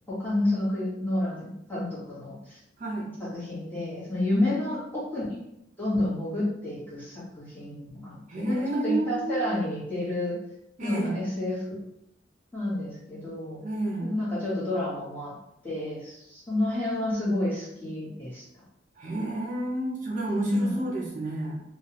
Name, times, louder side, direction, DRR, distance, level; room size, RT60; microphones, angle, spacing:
voice 1, 0.1-2.6 3.2-5.3 5.8-8.6 8.8-10.4 10.8-11.8 12.5-13.6 14.0-15.3 15.6-18.4 20.4-20.7, left 1 dB, 10° left, -9 dB, 1.2 m, -29 dB
voice 2, 2.8-3.1 4.4-4.5 8.3-9.6 10.8-11.2 13.6-14.2 19.0-21.6, right 2 dB, 45° right, -3 dB, 0.6 m, -30 dB
3.2 x 2.3 x 2.9 m, 0.83 s
head